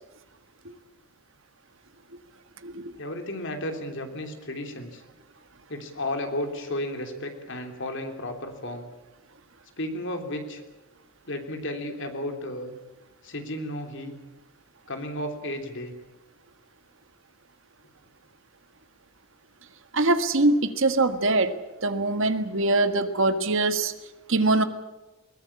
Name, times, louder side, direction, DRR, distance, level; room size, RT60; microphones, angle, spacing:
voice 1, 3.0-5.0 5.7-8.9 9.8-10.6 11.3-12.7 13.2-14.2 14.9-15.9, left 1 dB, 55° left, 5 dB, 3.3 m, -33 dB
voice 2, 19.9-21.6 21.8-23.9 24.3-24.6, right 2 dB, 60° right, 9 dB, 1.6 m, -22 dB
21.5 x 19.0 x 8.6 m, 1.1 s
head